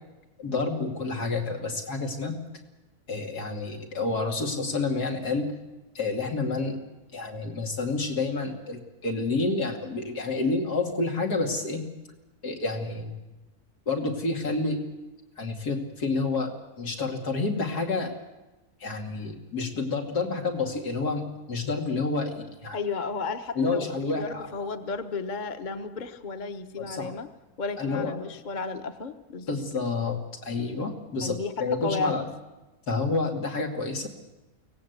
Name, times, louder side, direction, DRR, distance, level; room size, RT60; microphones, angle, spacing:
voice 1, 0.4-2.4 3.1-5.5 5.9-6.8 7.1-11.8 12.4-13.2 13.9-14.9 15.4-16.5 16.8-18.1 18.8-22.8 23.6-24.5 26.8-27.1 27.8-28.2 29.5-32.3 32.9-34.1, left 3 dB, 90° left, 2 dB, 3.1 m, -29 dB
voice 2, 22.7-27.3 27.6-29.5 31.2-31.5 31.8-32.2, left 4 dB, 35° left, 8 dB, 1.1 m, -33 dB
23.5 x 18.0 x 8.1 m, 1.1 s
omnidirectional pair, 1.6 m